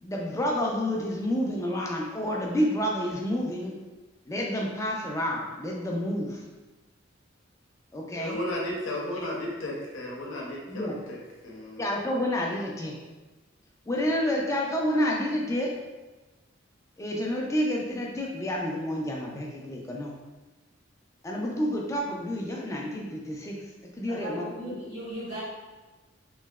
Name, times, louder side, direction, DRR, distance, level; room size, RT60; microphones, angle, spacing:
voice 1, 0.0-3.7 4.3-6.4 7.9-8.4 10.7-11.0 11.8-12.9 13.9-15.7 17.0-20.1 21.2-23.5 24.0-24.4, equal, 15° left, -1 dB, 0.4 m, -29 dB
voice 2, 8.1-11.2 11.4-11.8, left 1 dB, 85° left, -3 dB, 0.7 m, -34 dB
voice 3, 24.1-25.4, equal, 45° right, -8 dB, 0.7 m, -37 dB
3.0 x 2.7 x 2.3 m, 1.2 s
head